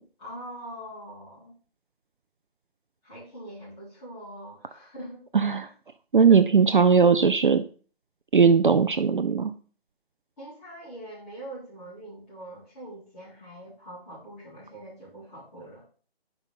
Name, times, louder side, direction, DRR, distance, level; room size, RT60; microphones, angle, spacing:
voice 1, 0.2-1.5 3.0-5.3 5.5-5.7 6.3-6.5 10.4-15.8, right 1 dB, 15° left, -9 dB, 3.6 m, -43 dB
voice 2, 6.1-7.6 8.3-9.5, right 5 dB, 55° right, 10 dB, 0.5 m, -19 dB
5.9 x 5.4 x 5.6 m, 0.41 s
figure-of-eight pair, 165°, 31 cm